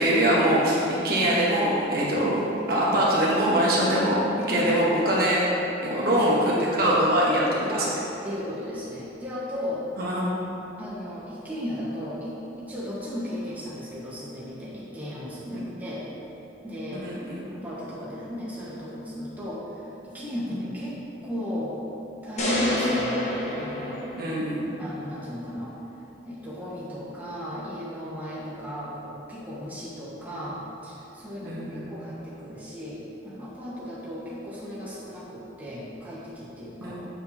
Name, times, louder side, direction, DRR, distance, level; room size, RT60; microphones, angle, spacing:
voice 1, 0.0-5.4 5.8-7.9 10.0-10.4 15.5-15.6 16.9-17.4 20.5-20.6 24.2-24.8 31.4-31.8 36.8-37.1, right 1 dB, 55° right, -6 dB, 1.1 m, -23 dB
voice 2, 4.5-4.8 5.9-6.4 6.7-6.8 7.7-7.9 8.2-9.9 10.8-16.0 16.6-17.1 17.5-21.0 21.2-21.8 22.2-24.0 24.8-25.7 26.2-37.0, equal, 10° right, -9 dB, 1.4 m, -35 dB
sound 1, 22.4-24.7, left 1 dB, 40° left, 1.1 m, -27 dB
7.5 x 7.3 x 2.9 m, 2.9 s
head